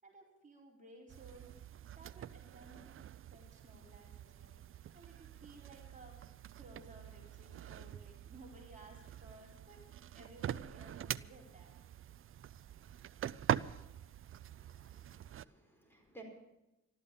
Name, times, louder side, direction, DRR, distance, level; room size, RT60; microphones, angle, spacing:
voice 1, 0.0-1.6 1.9-2.9 3.3-4.6 4.9-6.2 6.5-9.8 10.1-11.8, right 2 dB, 25° right, -1 dB, 4.6 m, -57 dB
sound 1, 1.1-15.4, right 10 dB, 45° right, 0.5 m, -44 dB
voice 2, 14.6-16.2, right 3 dB, 5° left, 1 dB, 4.8 m, -58 dB
14.0 x 13.0 x 7.1 m, 0.97 s
cardioid pair, 90°, 30 cm